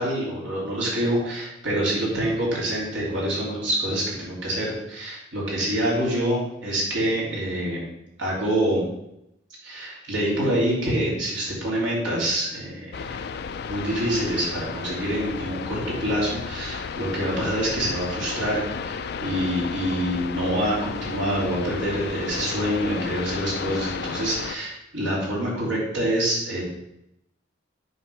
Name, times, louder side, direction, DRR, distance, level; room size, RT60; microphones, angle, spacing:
voice 1, 0.0-7.8 8.2-8.8 9.6-13.2 13.6-26.6, right 1 dB, 70° right, -5 dB, 3.3 m, -26 dB
sound 1, 12.9-24.6, left 6 dB, 55° left, 0.4 m, -33 dB
8.1 x 4.5 x 5.2 m, 0.82 s
head